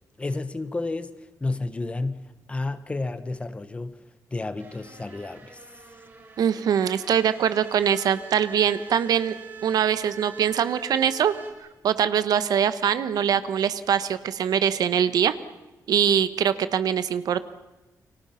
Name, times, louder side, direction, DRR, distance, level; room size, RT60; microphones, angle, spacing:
voice 1, 0.2-4.0 4.3-5.6, left 2 dB, 20° left, 1.1 m, -31 dB
sound 1, 4.6-11.5, right 5 dB, 35° right, 6.1 m, -43 dB
voice 2, 6.4-9.3 9.6-11.3 11.8-15.3 15.9-17.5, right 8 dB, 75° right, 1.2 m, -23 dB
29.5 x 24.5 x 5.8 m
wide cardioid pair, 170°, 7 cm